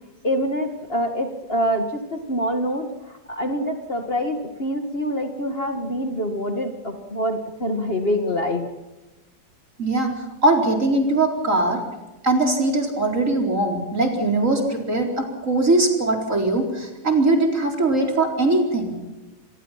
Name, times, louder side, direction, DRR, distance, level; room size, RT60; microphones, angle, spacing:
voice 1, 0.2-8.7, equal, 30° left, 5 dB, 2.2 m, -25 dB
voice 2, 9.8-11.8 12.2-19.0, right 2 dB, 45° right, 2 dB, 4.6 m, -21 dB
27.0 x 21.5 x 5.8 m, 1.1 s
omnidirectional pair, 2.0 m